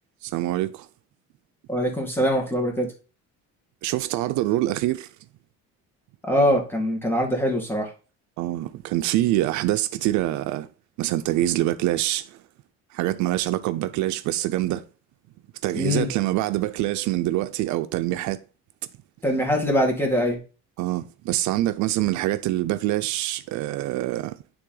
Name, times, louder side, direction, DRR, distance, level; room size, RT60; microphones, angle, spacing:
voice 1, 0.2-0.9 3.8-5.1 8.4-10.7 11.0-12.4 12.9-14.8 15.6-18.4 20.8-24.3, right 15 dB, 75° right, 0.5 m, -25 dB
voice 2, 1.7-2.9 6.2-7.9 15.7-16.1 19.2-20.4, equal, 5° left, 2.0 m, -23 dB
9.6 x 3.5 x 3.8 m
cardioid pair, 135°, 29 cm